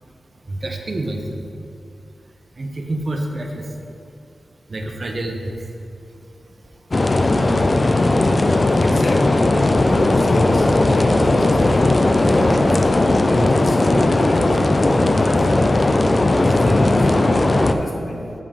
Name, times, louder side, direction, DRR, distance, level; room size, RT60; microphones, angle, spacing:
voice 1, 0.5-1.2 2.6-3.6 4.7-5.5, right 1 dB, 45° right, 2 dB, 0.7 m, -27 dB
sound 1, 6.9-17.7, left 2 dB, 35° left, 0.4 m, -16 dB
voice 2, 8.8-14.7 15.1-18.3, left 1 dB, 60° left, 1 dB, 1.0 m, -30 dB
7.5 x 3.7 x 5.1 m, 2.7 s
wide cardioid pair, 85°, 0 cm